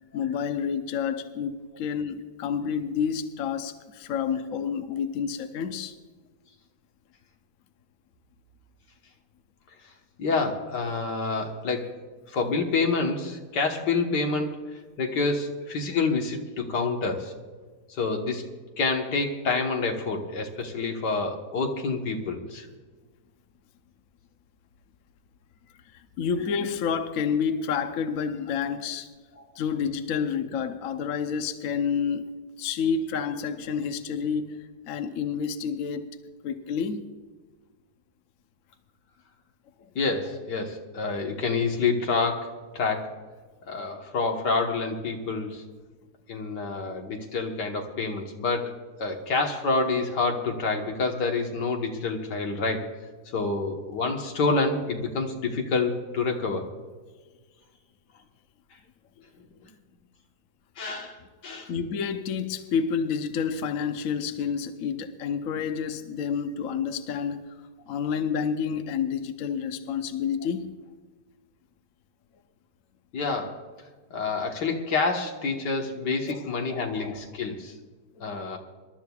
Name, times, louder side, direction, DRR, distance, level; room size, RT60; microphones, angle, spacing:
voice 1, 0.1-5.9 25.9-29.1 29.6-32.3 32.6-36.2 36.4-37.1 39.8-39.9 61.7-67.5 67.9-70.7 76.3-76.4 78.2-78.5, left 6 dB, 60° left, 1.1 m, -29 dB
voice 2, 10.2-11.9 12.3-14.6 15.0-17.3 18.0-18.4 18.8-22.7 40.0-43.1 43.7-45.6 46.3-48.7 49.0-52.9 53.3-56.6 60.8-61.2 61.4-61.7 73.1-73.6 74.1-77.7 78.2-78.6, left 4 dB, 80° left, 2.0 m, -27 dB
26.0 x 12.5 x 2.4 m
omnidirectional pair, 1.8 m